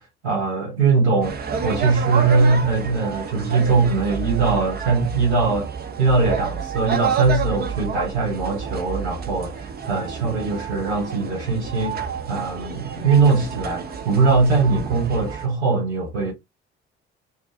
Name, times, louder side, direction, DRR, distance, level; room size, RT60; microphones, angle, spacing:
voice 1, 0.0-5.7 6.0-16.3, right 4 dB, 90° right, 0.7 m, -21 dB
sound 1, 1.2-15.5, right 7 dB, 30° right, 0.7 m, -29 dB
2.5 x 2.3 x 2.5 m
figure-of-eight pair, 45°, 32 cm